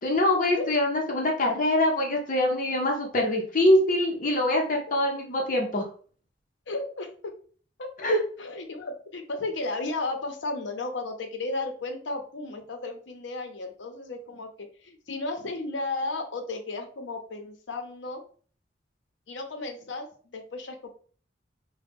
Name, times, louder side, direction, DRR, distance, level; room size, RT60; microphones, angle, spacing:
voice 1, 0.0-5.8 8.0-8.2, left 1 dB, 45° left, 0 dB, 0.7 m, -24 dB
voice 2, 6.7-7.1 7.8-7.9 8.4-18.2 19.3-20.9, left 2 dB, 80° left, 5 dB, 0.7 m, -34 dB
3.8 x 2.2 x 3.5 m, 0.44 s
head